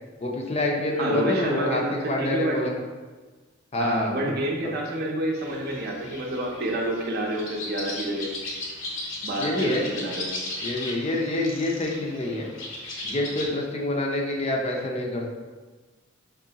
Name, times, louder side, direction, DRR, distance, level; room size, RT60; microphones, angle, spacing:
voice 1, 0.2-2.7 3.7-4.3 4.6-4.7 9.4-9.8 10.6-12.5 13.0-15.3, left 1 dB, 35° left, 0 dB, 0.5 m, -27 dB
voice 2, 1.0-2.6 3.8-8.3 9.2-10.3, right 1 dB, 50° right, 0 dB, 0.6 m, -28 dB
sound 1, 5.3-13.4, left 2 dB, 70° left, 0.8 m, -36 dB
3.6 x 3.1 x 2.8 m, 1.3 s
head